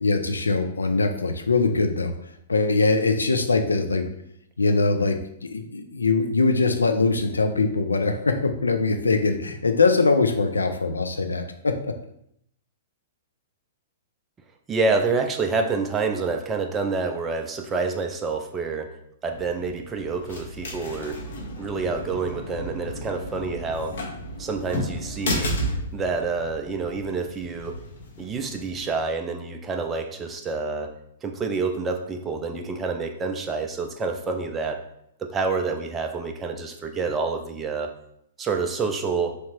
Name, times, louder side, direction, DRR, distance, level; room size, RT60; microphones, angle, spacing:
voice 1, 0.0-2.1 2.5-4.1 4.6-11.9, left 3 dB, 75° left, 7 dB, 0.4 m, -22 dB
voice 2, 14.7-19.0 19.2-21.2 21.6-24.0 24.4-25.6 25.9-27.8 28.2-30.9 31.2-34.8 35.2-37.9 38.4-39.4, right 4 dB, 15° right, 4 dB, 0.4 m, -28 dB
sound 1, 19.3-28.9, equal, 60° left, 0.7 m, -33 dB
3.2 x 2.8 x 2.9 m, 0.74 s
figure-of-eight pair, 110°, 0 cm